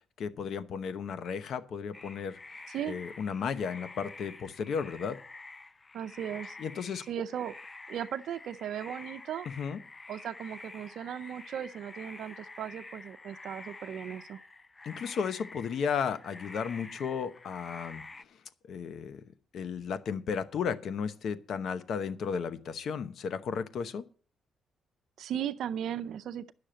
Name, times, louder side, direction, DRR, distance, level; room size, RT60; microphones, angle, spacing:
voice 1, 0.2-2.4 2.9-5.2 6.6-7.0 9.6-9.8 14.8-18.0 18.7-19.2 19.5-24.0, left 6 dB, 65° left, 0.9 m, -34 dB
sound 1, 1.9-18.2, left 3 dB, 25° left, 0.6 m, -48 dB
voice 2, 5.9-6.6 7.1-7.6 7.9-9.5 10.1-14.4 25.2-26.5, right 10 dB, 75° right, 0.5 m, -37 dB
10.5 x 6.4 x 7.7 m
cardioid pair, 90°, 0 cm